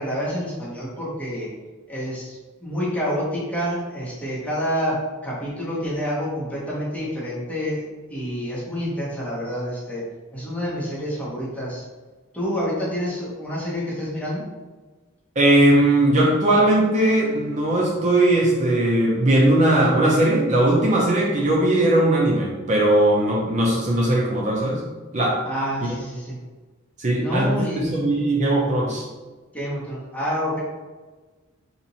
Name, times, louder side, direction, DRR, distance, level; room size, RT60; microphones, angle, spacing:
voice 1, 0.0-1.5 1.9-10.0 10.3-11.8 12.3-14.5 25.4-26.4 27.2-27.9 28.9-29.0 29.5-30.6, equal, 5° left, -7 dB, 1.0 m, -28 dB
voice 2, 15.4-24.8 25.1-25.4 27.0-29.0, right 1 dB, 35° right, -3 dB, 0.6 m, -19 dB
2.9 x 2.6 x 4.0 m, 1.3 s
head